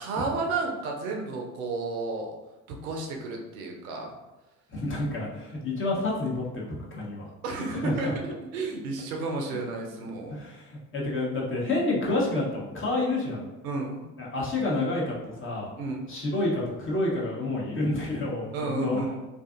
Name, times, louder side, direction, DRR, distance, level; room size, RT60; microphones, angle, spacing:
voice 1, 0.0-2.3 2.7-4.2 7.4-10.3 11.9-12.1 13.6-14.0 15.8-16.0 18.5-19.2, right 3 dB, 80° right, 1 dB, 0.6 m, -32 dB
voice 2, 4.7-7.3 7.8-7.9 9.9-10.0 10.3-13.4 14.2-15.7 16.1-19.0, left 2 dB, 30° left, -4 dB, 0.8 m, -29 dB
2.5 x 2.4 x 2.4 m, 1.1 s
hypercardioid pair, 60°, 42 cm